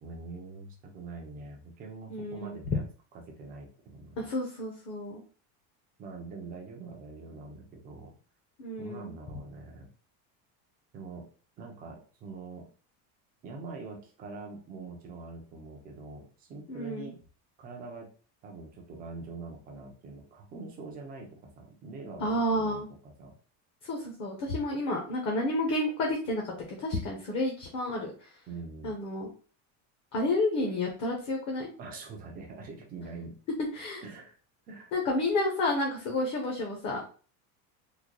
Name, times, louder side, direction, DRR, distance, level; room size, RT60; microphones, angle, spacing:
voice 1, 0.0-2.8 3.3-4.2 6.0-8.1 8.8-9.9 10.9-11.3 11.6-12.6 13.4-17.2 17.6-18.1 18.4-23.3 28.5-28.9 31.8-33.4 34.0-34.4 34.7-34.9, right 3 dB, 20° right, 1 dB, 0.4 m, -44 dB
voice 2, 2.1-2.6 4.2-5.2 8.6-9.2 16.7-17.1 22.2-22.9 23.8-28.4 28.8-29.3 30.1-31.7 33.7-34.0 34.9-37.0, left 1 dB, 35° left, 1 dB, 0.6 m, -30 dB
3.8 x 2.1 x 2.9 m, 0.38 s
cardioid pair, 180°, 44 cm